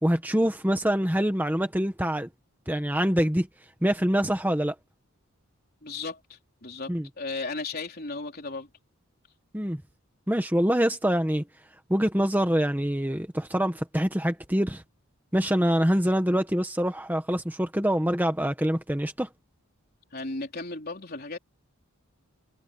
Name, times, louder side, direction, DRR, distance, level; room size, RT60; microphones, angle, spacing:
voice 1, 0.0-2.3 2.7-3.5 3.8-4.7 6.9-7.1 9.5-9.8 10.3-11.4 11.9-14.8 15.3-19.3, equal, 10° right, 1.3 m, -25 dB
voice 2, 5.8-8.7 20.1-21.4, left 3 dB, 45° left, 3.8 m, -35 dB
head